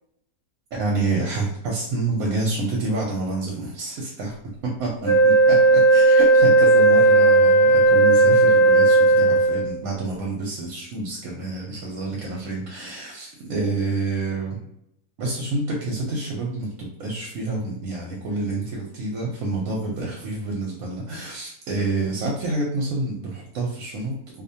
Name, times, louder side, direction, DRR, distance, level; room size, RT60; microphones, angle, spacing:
voice 1, 0.7-4.3 4.6-14.6 15.2-24.4, right 2 dB, 70° right, -2 dB, 1.0 m, -28 dB
Wind instrument woodwind instrument, 5.0-9.8, right 2 dB, 5° left, 0.8 m, -15 dB
2.6 x 2.1 x 2.7 m, 0.78 s
omnidirectional pair, 1.6 m